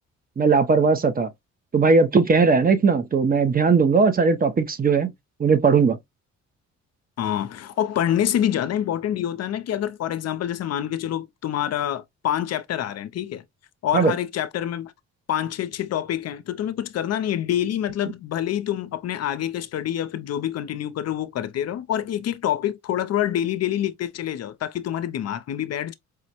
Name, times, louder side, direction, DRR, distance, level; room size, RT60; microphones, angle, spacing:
voice 1, 0.4-1.3 1.7-5.1 5.4-6.0 13.9-14.1, right 4 dB, 30° right, 0.6 m, -18 dB
voice 2, 7.2-13.4 13.8-14.9 15.3-25.9, left 11 dB, 55° left, 0.5 m, -26 dB
4.8 x 2.1 x 2.8 m
cardioid pair, 90°, 30 cm